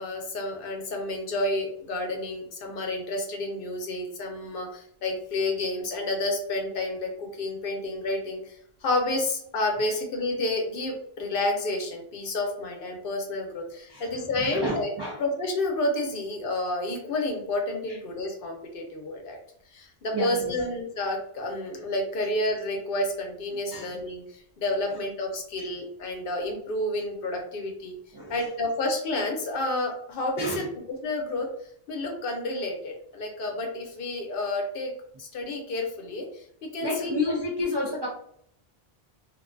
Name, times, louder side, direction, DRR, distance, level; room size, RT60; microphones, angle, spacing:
voice 1, 0.0-8.5 8.8-14.9 15.2-19.4 19.7-24.2 24.6-28.0 28.3-30.7 31.0-31.5 31.9-34.9 35.2-36.4 36.7-37.1, left 2 dB, 65° left, 1 dB, 0.8 m, -30 dB
voice 2, 14.4-15.2 20.1-20.7 23.7-23.9 25.6-25.7 28.1-28.5 30.4-30.7 36.8-38.1, left 1 dB, 45° right, -5 dB, 0.3 m, -30 dB
2.5 x 2.2 x 2.4 m, 0.68 s
omnidirectional pair, 1.0 m